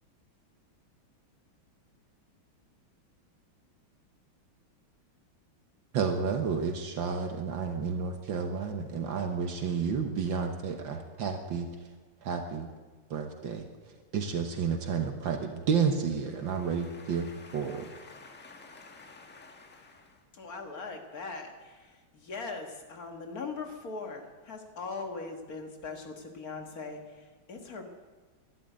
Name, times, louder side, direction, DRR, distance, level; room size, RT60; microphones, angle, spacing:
voice 1, 5.9-11.7 12.2-12.7 13.1-13.6 14.1-17.3 17.5-17.8, right 6 dB, 70° right, 1.8 m, -31 dB
voice 2, 16.3-20.2, left 3 dB, 5° left, 1.4 m, -51 dB
voice 3, 20.3-27.9, left 4 dB, 45° left, 2.1 m, -40 dB
12.5 x 11.5 x 9.4 m
omnidirectional pair, 2.2 m